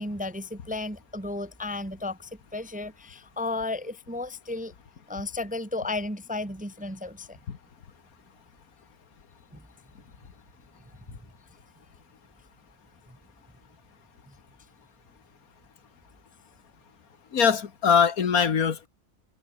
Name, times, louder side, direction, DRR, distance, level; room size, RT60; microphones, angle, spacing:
voice 1, 0.0-4.7 5.1-7.4 9.5-9.6 13.1-13.2 14.3-14.4, left 2 dB, 5° right, 0.8 m, -34 dB
voice 2, 17.3-18.9, left 6 dB, 75° left, 2.0 m, -22 dB
omnidirectional pair, 1.6 m